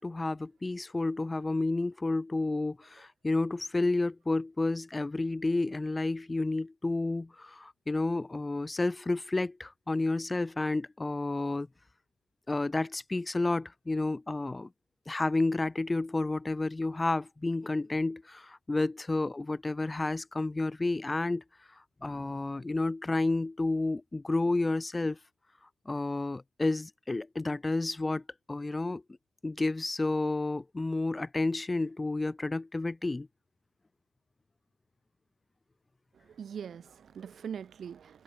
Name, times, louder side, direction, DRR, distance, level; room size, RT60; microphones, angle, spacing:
voice 1, 0.0-11.7 12.5-14.7 15.1-21.4 22.0-25.2 25.9-29.0 29.4-33.3, left 2 dB, 20° left, 5.3 m, -31 dB
voice 2, 36.3-38.2, right 7 dB, 55° right, 5.2 m, -42 dB
cardioid pair, 85°, 0 cm